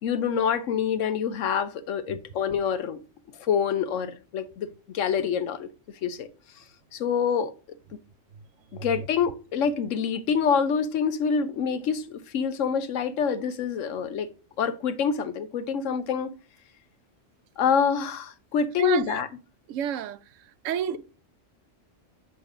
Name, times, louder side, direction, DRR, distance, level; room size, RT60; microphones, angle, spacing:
voice 1, 0.0-3.0 3.4-5.7 6.0-6.3 6.9-7.5 8.7-14.3 14.6-16.3 17.6-19.3, left 7 dB, 90° left, 1.1 m, -26 dB
voice 2, 8.7-9.1 18.8-19.2 19.7-20.2 20.6-21.0, right 9 dB, 85° right, 0.9 m, -30 dB
7.1 x 3.2 x 4.7 m
omnidirectional pair, 1.3 m